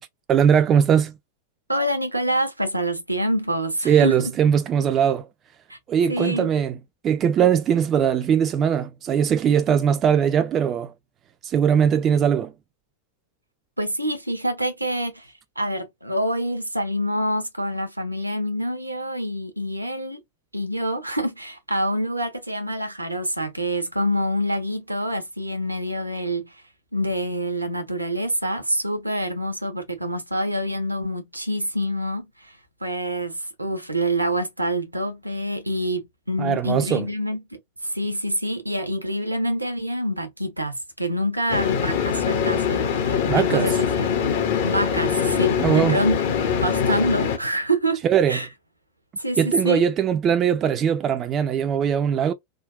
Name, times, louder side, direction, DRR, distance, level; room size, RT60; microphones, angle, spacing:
voice 1, 0.3-1.2 3.9-5.3 5.9-6.7 7.0-10.9 11.4-12.5 36.4-37.1 43.3-43.7 45.6-46.0 48.0-48.4 49.4-52.3, right 8 dB, 30° right, 0.3 m, -20 dB
voice 2, 1.7-4.3 5.7-5.8 6.1-6.5 13.8-20.2 20.5-26.6 26.9-44.3 44.6-46.4 46.6-48.5 49.2-49.9, equal, 85° right, 0.7 m, -26 dB
sound 1, 41.5-47.4, left 7 dB, 50° left, 0.8 m, -23 dB
3.6 x 2.2 x 2.3 m
figure-of-eight pair, 90°, 0 cm